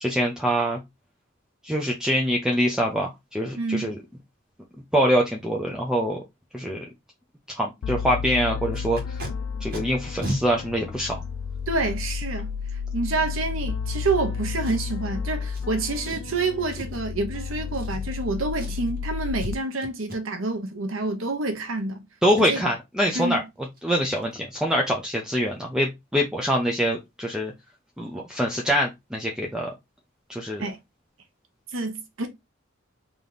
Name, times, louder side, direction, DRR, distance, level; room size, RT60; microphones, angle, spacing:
voice 1, 0.0-0.8 1.6-4.0 4.9-6.2 6.5-6.8 7.6-9.2 9.6-11.2 22.2-23.4 23.8-27.5 28.0-29.7 30.3-30.6, equal, 5° right, 0.6 m, -24 dB
voice 2, 3.6-4.0 11.7-12.5 12.9-22.0 22.3-22.6 23.1-23.4 30.6-30.8 31.7-32.3, right 3 dB, 80° right, 0.9 m, -28 dB
sound 1, 7.8-19.5, left 6 dB, 85° left, 0.3 m, -32 dB
Packing tape duct tape, 8.7-9.3 9.7-9.8 10.2-10.4 11.2-11.3 14.6-15.0 15.5-15.7 16.0-16.3 16.7-17.1 17.7-18.3 18.5-19.0 19.4-19.5 19.8-20.2 23.2-23.3 23.6-23.8 24.2-24.3 24.6-24.9 25.1-25.2, equal, 50° right, 1.6 m, -34 dB
3.4 x 3.0 x 3.8 m
head